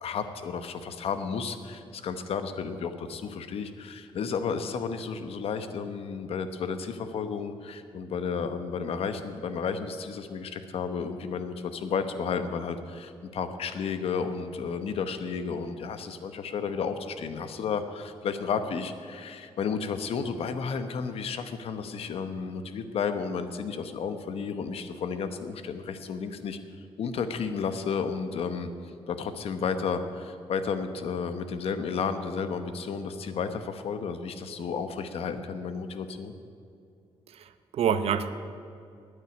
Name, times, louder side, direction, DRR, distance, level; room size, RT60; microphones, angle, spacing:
voice 1, 0.0-26.6 27.0-28.7 29.1-36.3, left 5 dB, 70° left, 9 dB, 1.0 m, -32 dB
voice 2, 37.3-38.3, right 7 dB, 70° right, 11 dB, 0.7 m, -27 dB
9.2 x 9.1 x 9.8 m, 2.4 s
cardioid pair, 135°, 10 cm